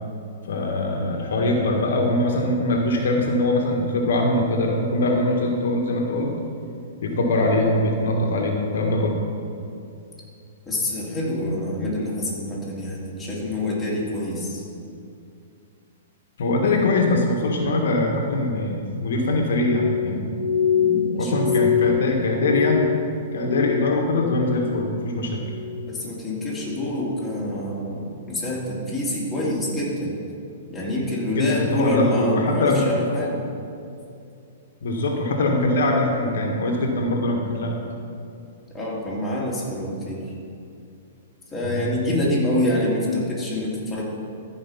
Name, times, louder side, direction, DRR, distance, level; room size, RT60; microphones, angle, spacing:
voice 1, 0.5-6.3 7.0-9.2 16.4-20.3 21.2-22.9 23.3-25.4 31.3-32.8 34.8-37.7 41.6-41.9, left 2 dB, 75° left, 1 dB, 1.5 m, -22 dB
voice 2, 10.7-14.6 20.8-21.4 25.9-30.2 30.7-33.4 38.7-40.3 41.5-44.0, left 1 dB, 10° left, -7 dB, 2.9 m, -26 dB
Glass, 19.5-24.1 24.4-25.0 25.4-26.0 26.5-26.8, left 8 dB, 90° left, 0.7 m, -25 dB
14.0 x 5.1 x 5.7 m, 2.5 s
hypercardioid pair, 135°, 0 cm